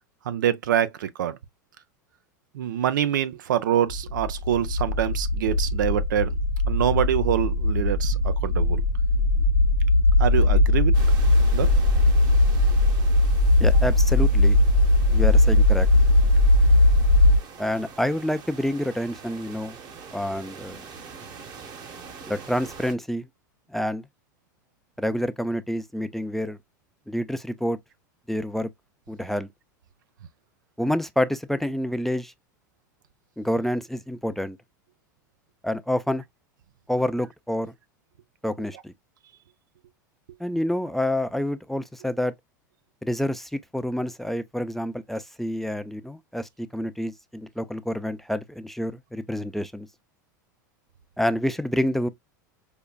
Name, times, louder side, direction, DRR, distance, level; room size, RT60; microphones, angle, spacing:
voice 1, 0.3-1.4 2.5-6.3 6.7-8.8 10.2-10.9 11.5-11.7, right 10 dB, 80° right, 0.5 m, -25 dB
sound 1, 3.9-17.4, left 2 dB, 90° left, 0.8 m, -19 dB
sound 2, 10.9-22.9, right 5 dB, 40° right, 1.1 m, -44 dB
voice 2, 13.6-14.6 15.1-15.9 17.6-19.8 20.1-20.8 22.3-23.3 23.7-24.1 25.0-26.6 27.1-27.8 28.3-28.7 29.1-29.5 30.8-32.3 33.4-34.6 35.6-36.2 36.9-37.7 38.4-38.9 40.4-42.3 43.0-49.9 51.2-52.1, left 1 dB, ahead, 0.4 m, -28 dB
5.1 x 2.3 x 2.2 m
hypercardioid pair, 95°, 10 cm